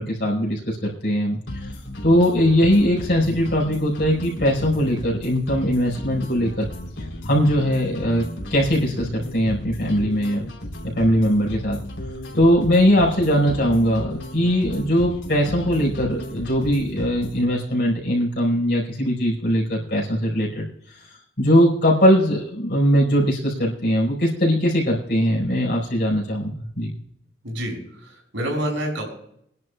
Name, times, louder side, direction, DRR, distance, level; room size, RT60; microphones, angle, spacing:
voice 1, 0.0-1.7 2.0-6.7 7.2-10.5 10.9-11.8 12.3-21.1 21.4-27.0, equal, 55° left, -3 dB, 4.8 m, -20 dB
sound 1, 1.5-17.5, left 1 dB, 85° left, 3.4 m, -34 dB
voice 2, 27.4-29.1, equal, 90° right, 1 dB, 6.0 m, -28 dB
25.0 x 11.0 x 2.3 m, 0.70 s
head